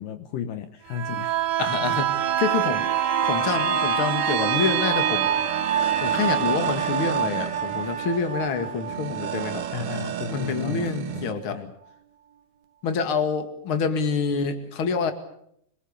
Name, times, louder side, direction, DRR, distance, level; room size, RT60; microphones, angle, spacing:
voice 1, 0.0-1.4 9.7-11.7, left 7 dB, 70° left, 9 dB, 2.5 m, -34 dB
sound 1, 0.9-10.5 10.9-11.0, right 9 dB, 85° right, 3.2 m, -25 dB
voice 2, 1.6-2.1 2.4-2.8 3.2-5.3 6.0-9.6 10.3-11.6 12.8-15.1, left 5 dB, 40° left, 8 dB, 2.5 m, -27 dB
sound 2, 4.4-11.3, right 10 dB, 65° right, 2.4 m, -35 dB
25.5 x 22.0 x 6.8 m, 0.72 s
omnidirectional pair, 4.3 m